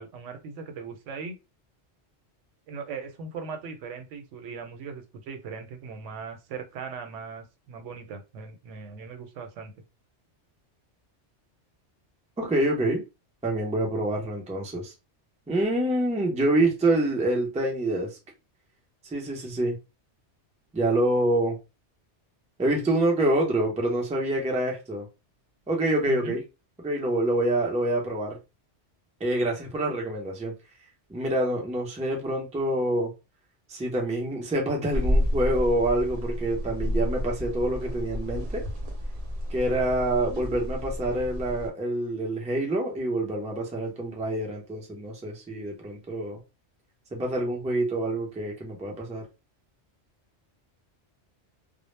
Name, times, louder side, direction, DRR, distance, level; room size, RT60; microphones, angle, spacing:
voice 1, 0.0-1.4 2.7-9.7 26.1-26.4, right 5 dB, 85° right, 0.9 m, -39 dB
voice 2, 12.4-13.0 13.4-14.9 15.5-18.1 19.1-19.8 20.7-21.6 22.6-25.1 25.7-26.4 26.8-28.4 29.2-30.5 31.1-33.1 33.7-38.6 39.5-46.4 47.1-49.2, right 1 dB, 10° right, 0.3 m, -26 dB
atmosphere - exteriour hospital, 34.9-41.7, equal, 55° right, 0.7 m, -30 dB
2.0 x 2.0 x 3.1 m
omnidirectional pair, 1.2 m